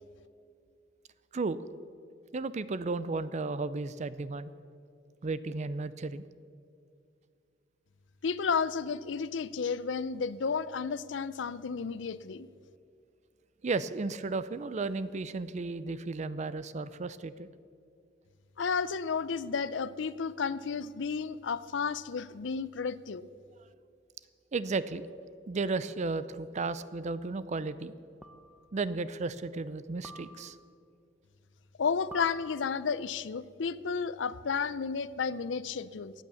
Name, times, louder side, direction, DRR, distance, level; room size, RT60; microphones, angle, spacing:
voice 1, 2.3-4.5 5.2-6.2 13.6-17.5 23.6-23.7 24.5-25.1 25.5-27.9 28.7-30.6, right 3 dB, 40° right, 15 dB, 0.5 m, -34 dB
voice 2, 8.2-12.5 18.6-23.3 31.8-36.1, left 5 dB, 85° left, 17 dB, 0.5 m, -32 dB
sound 1, 25.0-25.1 26.6-27.0 28.2-28.8 30.0-30.8 32.1-33.0, right 1 dB, 5° right, 0.8 m, -50 dB
15.5 x 9.2 x 7.0 m, 2.4 s
head